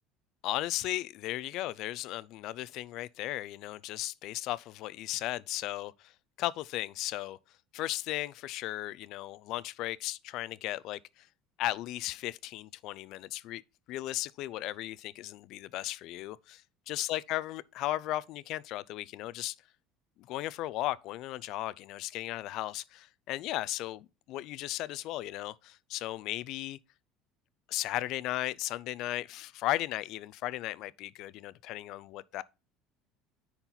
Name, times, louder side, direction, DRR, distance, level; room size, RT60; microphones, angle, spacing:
voice 1, 0.4-6.1 6.4-7.4 7.7-11.3 11.6-13.6 13.9-19.5 20.3-26.8 27.7-32.4, left 16 dB, 55° left, 0.4 m, -36 dB
9.9 x 4.4 x 3.9 m
cardioid pair, 145°, 0 cm